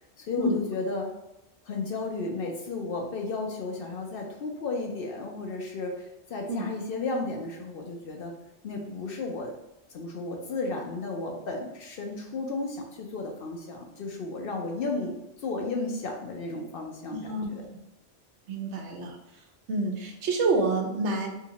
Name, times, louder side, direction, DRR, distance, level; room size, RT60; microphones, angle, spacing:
voice 1, 0.2-1.1 1.6-8.3 8.6-9.5 9.9-17.6, left 3 dB, 60° left, 1 dB, 0.7 m, -33 dB
voice 2, 17.1-17.5 18.5-19.2 19.7-21.3, right 2 dB, 75° right, 2 dB, 0.9 m, -28 dB
3.5 x 2.8 x 2.9 m, 0.91 s
omnidirectional pair, 1.2 m